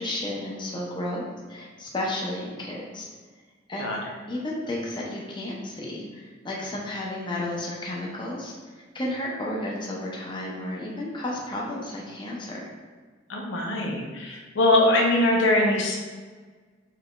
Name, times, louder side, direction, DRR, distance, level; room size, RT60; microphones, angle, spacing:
voice 1, 0.0-3.1 3.7-4.0 4.3-8.5 8.9-12.7, left 1 dB, 25° left, -4 dB, 0.7 m, -32 dB
voice 2, 3.8-4.1 13.3-16.0, left 1 dB, 70° left, -1 dB, 0.7 m, -22 dB
5.8 x 3.3 x 2.3 m, 1.4 s
head